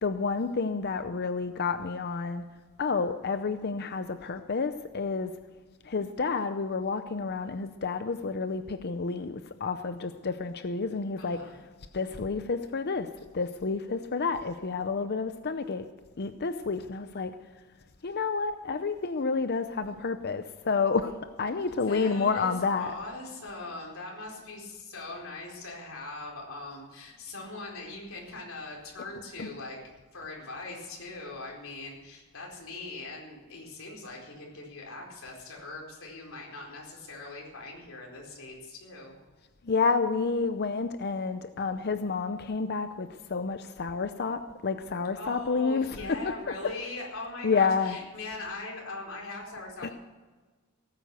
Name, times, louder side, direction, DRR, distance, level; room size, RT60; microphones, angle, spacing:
voice 1, 0.0-2.4 2.8-5.3 5.8-11.4 11.9-13.1 13.3-15.8 16.2-17.3 18.0-22.9 29.4-29.5 39.6-46.2 47.4-47.9 49.8-49.9, left 4 dB, 45° left, 10 dB, 0.6 m, -29 dB
voice 2, 11.2-11.6 21.9-29.8 30.1-39.2 45.1-49.9, left 2 dB, 60° left, -2 dB, 4.5 m, -41 dB
17.5 x 9.2 x 6.7 m, 1.3 s
head